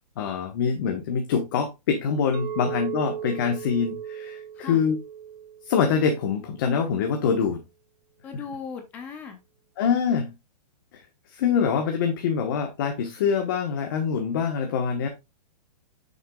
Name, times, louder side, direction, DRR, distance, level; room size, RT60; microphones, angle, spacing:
voice 1, 0.2-5.0 5.6-7.6 9.8-10.3 10.9-11.0 11.3-15.1, left 6 dB, 30° left, 5 dB, 1.1 m, -25 dB
Chink clink, 2.3-6.6, right 9 dB, 80° right, 1.1 m, -37 dB
voice 2, 8.2-9.4, left 6 dB, 10° left, 7 dB, 0.4 m, -37 dB
7.8 x 6.7 x 2.3 m, 0.22 s
hypercardioid pair, 175°, 21 cm